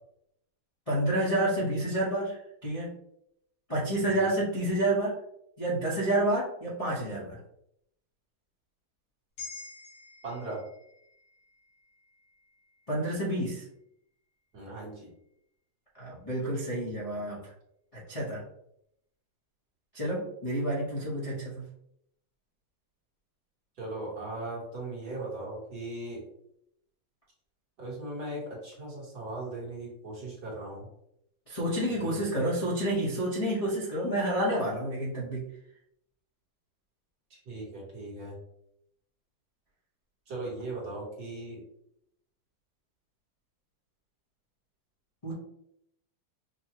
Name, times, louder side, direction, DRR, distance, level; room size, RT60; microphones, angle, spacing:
voice 1, 0.9-2.9 3.7-5.2 5.6-7.4 12.9-13.6 15.9-17.5 17.9-18.4 19.9-21.6 31.5-35.5 45.2-45.3, right 1 dB, 30° left, -9 dB, 0.6 m, -29 dB
sound 1, 9.4-13.9 14.3-14.4, left 4 dB, 90° left, 2.3 m, -49 dB
voice 2, 10.2-10.6 14.5-15.1 23.8-26.2 27.8-30.9 31.9-32.2 37.3-38.4 40.3-41.6, right 2 dB, 55° right, -5 dB, 1.8 m, -38 dB
5.3 x 2.2 x 2.9 m, 0.76 s
omnidirectional pair, 2.2 m